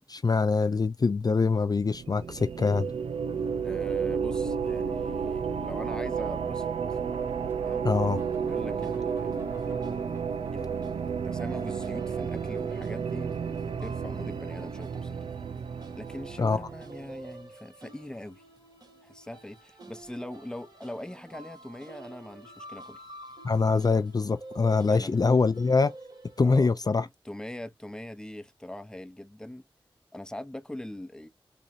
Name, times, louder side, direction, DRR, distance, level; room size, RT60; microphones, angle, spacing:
voice 1, 0.1-2.9 7.8-8.2 16.4-16.7 23.4-25.9 26.4-27.1, left 4 dB, 45° left, 0.4 m, -24 dB
sound 1, 1.8-17.2, right 6 dB, 90° right, 0.4 m, -32 dB
voice 2, 3.6-7.0 7.6-7.9 8.4-9.9 10.5-15.2 16.0-18.4 19.0-23.0 24.9-25.2 26.4-26.8 27.2-29.6 30.1-31.3, left 1 dB, 10° left, 0.7 m, -42 dB
sound 2, 7.1-12.6 12.9-13.0 13.2-13.4 13.7-14.2 14.5-14.8 15.6-15.7 16.1-16.2 16.5-16.7 18.9-19.0 21.4-21.5, equal, 20° right, 1.4 m, -55 dB
sound 3, 7.9-26.7, right 2 dB, 45° right, 1.8 m, -49 dB
3.9 x 3.0 x 2.5 m
cardioid pair, 45°, 10 cm